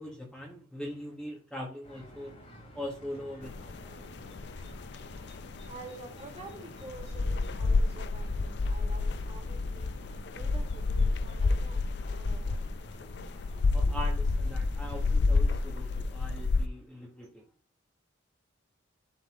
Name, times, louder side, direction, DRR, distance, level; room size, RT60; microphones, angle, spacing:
voice 1, 0.0-2.4 2.7-3.8 13.7-17.4, equal, 5° left, 1.2 m, -41 dB
sound 1, 1.8-16.1, equal, 35° left, 3.6 m, -52 dB
sound 2, 3.4-16.7, left 3 dB, 55° left, 0.4 m, -30 dB
voice 2, 3.8-4.5 5.2-5.3 5.7-9.9 10.4-12.6 13.7-13.8, right 2 dB, 30° right, 2.0 m, -49 dB
11.0 x 4.0 x 3.0 m
head